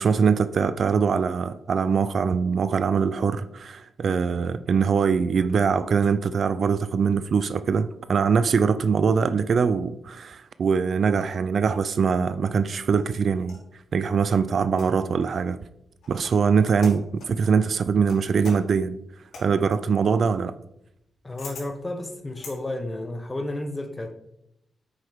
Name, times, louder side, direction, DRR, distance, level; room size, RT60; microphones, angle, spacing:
voice 1, 0.0-13.6 13.9-15.6 16.1-19.0 19.4-20.5, right 6 dB, 55° right, 0.4 m, -22 dB
sound 1, 12.4-13.7 14.7-15.2 16.0-16.4 16.8-17.4 18.1-22.6, left 3 dB, 80° left, 2.7 m, -45 dB
voice 2, 21.2-24.1, left 1 dB, 20° left, 1.0 m, -32 dB
9.2 x 6.5 x 3.6 m
cardioid pair, 110°, 0 cm